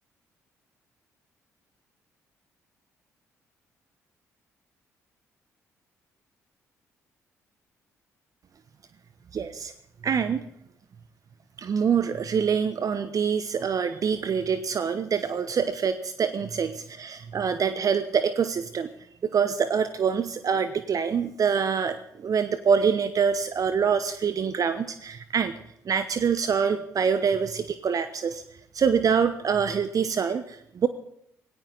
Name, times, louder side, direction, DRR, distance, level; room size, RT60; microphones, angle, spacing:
voice 1, 9.3-9.7 10.0-10.5 11.6-18.9 19.2-25.5 25.9-28.4 28.7-30.9, right 6 dB, 45° right, 12 dB, 0.9 m, -25 dB
18.5 x 17.5 x 4.0 m, 0.74 s
figure-of-eight pair, 45°, 8 cm